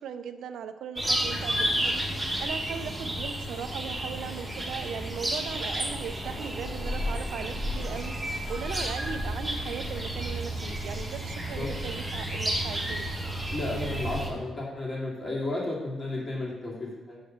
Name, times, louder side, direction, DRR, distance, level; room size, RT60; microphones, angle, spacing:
voice 1, 0.0-13.1, right 7 dB, 75° right, 10 dB, 0.5 m, -38 dB
sound 1, 1.0-14.3, right 1 dB, 5° right, 1.3 m, -31 dB
voice 2, 13.5-17.2, left 2 dB, 30° left, -4 dB, 2.3 m, -33 dB
6.4 x 4.9 x 6.2 m, 1.1 s
cardioid pair, 155°, 0 cm